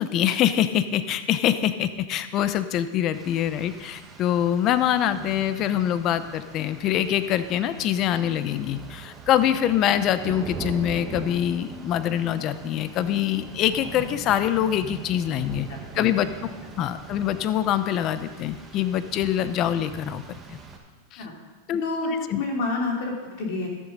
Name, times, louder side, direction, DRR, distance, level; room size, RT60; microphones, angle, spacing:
voice 1, 0.0-15.7 16.0-16.3 16.8-20.2 20.5-20.6 21.1-21.2 21.7-21.8 22.3-22.4, left 11 dB, 40° left, 12 dB, 0.6 m, -24 dB
Rain, 3.1-20.8, right 5 dB, 20° right, 1.5 m, -41 dB
voice 2, 15.7-16.1 21.2-21.3 21.8-23.7, left 3 dB, 60° left, 0 dB, 3.1 m, -29 dB
13.0 x 7.3 x 5.3 m, 1.3 s
hypercardioid pair, 125°, 0 cm